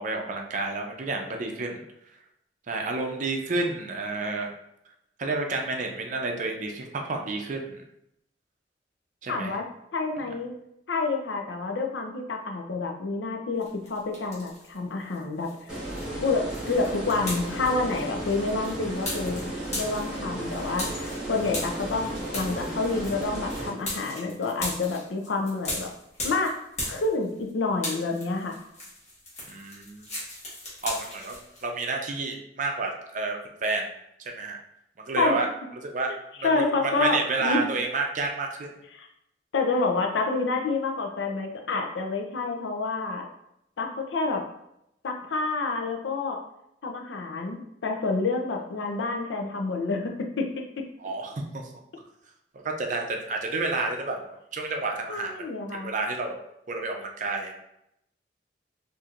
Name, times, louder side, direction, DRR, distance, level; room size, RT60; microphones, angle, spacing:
voice 1, 0.0-1.8 2.7-4.5 5.2-7.8 9.2-9.6 29.5-30.0 30.8-33.9 34.2-34.6 35.0-35.5 35.8-36.1 36.4-36.5 37.0-38.7 51.0-51.6 52.8-55.3 55.7-56.4 56.7-57.6, right 3 dB, 45° right, 2 dB, 0.5 m, -30 dB
voice 2, 9.3-9.7 9.9-10.5 10.9-15.8 16.2-19.4 19.7-25.9 26.2-26.6 26.9-28.6 35.2-35.4 36.4-37.7 38.9-39.1 39.5-43.3 43.8-44.5 45.0-46.4 46.8-50.5 50.8-50.9 55.1-55.9, left 3 dB, 90° left, 3 dB, 0.5 m, -28 dB
sound 1, 13.6-14.8 15.1-27.5 27.7-31.6, left 1 dB, 40° left, 1.3 m, -37 dB
sound 2, 15.7-23.7, right 1 dB, 5° right, 1.4 m, -34 dB
4.2 x 2.6 x 2.5 m, 0.81 s
head